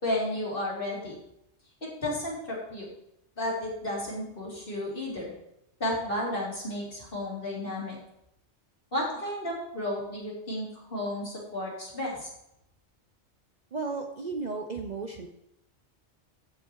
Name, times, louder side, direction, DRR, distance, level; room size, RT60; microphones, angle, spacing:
voice 1, 0.0-1.1 2.0-2.9 3.4-5.3 5.8-8.0 8.9-12.3, left 1 dB, 50° left, -5 dB, 3.9 m, -32 dB
voice 2, 13.7-15.3, right 4 dB, 40° right, 4 dB, 0.8 m, -34 dB
14.0 x 6.1 x 4.7 m, 0.80 s
omnidirectional pair, 1.2 m